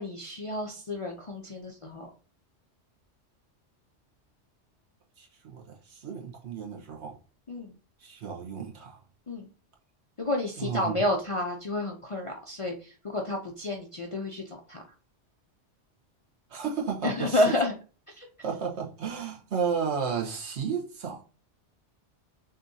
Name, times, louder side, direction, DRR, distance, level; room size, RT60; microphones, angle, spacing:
voice 1, 0.0-2.1 7.5-7.8 9.3-9.5 10.2-14.8 17.0-17.7 18.2-18.3, left 1 dB, 40° left, 0.5 m, -30 dB
voice 2, 5.2-7.2 8.0-9.0 10.6-11.0 16.5-17.4 18.4-21.2, right 6 dB, 65° right, 1.2 m, -33 dB
6.4 x 2.7 x 2.7 m
omnidirectional pair, 1.2 m